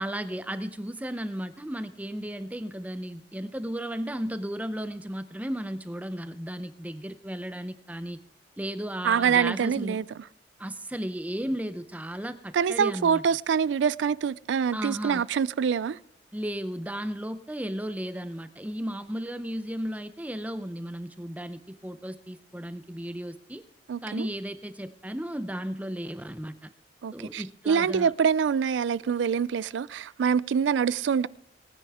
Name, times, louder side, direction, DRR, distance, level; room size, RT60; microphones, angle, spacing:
voice 1, 0.0-8.2 8.6-10.0 10.6-13.2 14.7-15.2 16.3-23.6 24.0-26.7 27.1-28.1, equal, 10° right, 0.5 m, -34 dB
voice 2, 9.0-10.0 12.5-16.0 23.9-24.3 27.0-31.3, right 7 dB, 80° right, 0.3 m, -25 dB
19.0 x 9.8 x 3.5 m
head